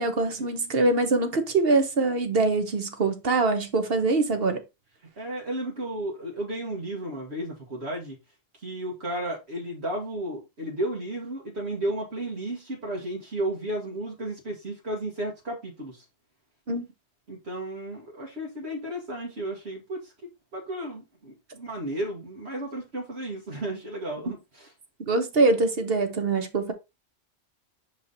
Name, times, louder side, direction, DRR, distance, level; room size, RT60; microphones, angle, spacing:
voice 1, 0.0-4.6 16.7-16.8 25.1-26.7, right 3 dB, 65° right, 1.4 m, -23 dB
voice 2, 5.2-8.2 8.6-16.0 17.3-20.1 20.5-24.7, right 1 dB, 80° right, 2.0 m, -33 dB
5.9 x 4.7 x 4.0 m
omnidirectional pair, 1.1 m